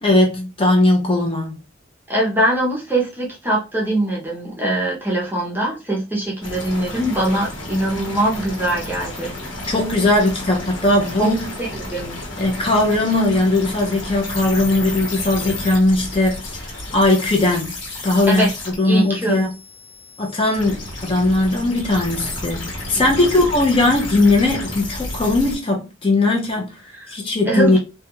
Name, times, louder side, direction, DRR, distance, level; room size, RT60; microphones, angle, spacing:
voice 1, 0.0-1.6 9.7-11.5 12.4-17.7 18.0-18.5 18.8-19.5 20.2-26.7 27.1-27.8, left 2 dB, 30° left, 0.6 m, -18 dB
voice 2, 2.1-9.3 11.2-11.3 11.6-12.2 18.3-18.5 18.8-19.4 22.9-23.3 26.9-27.1 27.5-27.8, right 1 dB, 10° right, 0.6 m, -22 dB
sound 1, 6.4-25.6, left 1 dB, 75° left, 1.1 m, -32 dB
2.3 x 2.2 x 2.9 m
head